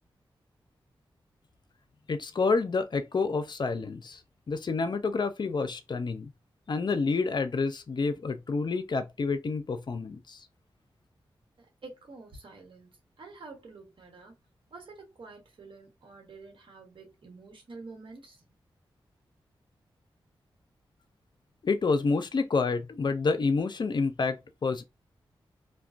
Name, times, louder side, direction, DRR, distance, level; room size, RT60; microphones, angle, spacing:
voice 1, 2.1-4.2 4.5-6.3 6.7-10.5 21.6-24.8, left 4 dB, 50° left, 0.5 m, -28 dB
voice 2, 11.6-14.4 14.7-18.5, right 3 dB, 65° right, 1.1 m, -48 dB
2.4 x 2.2 x 2.4 m
cardioid pair, 50°, 9 cm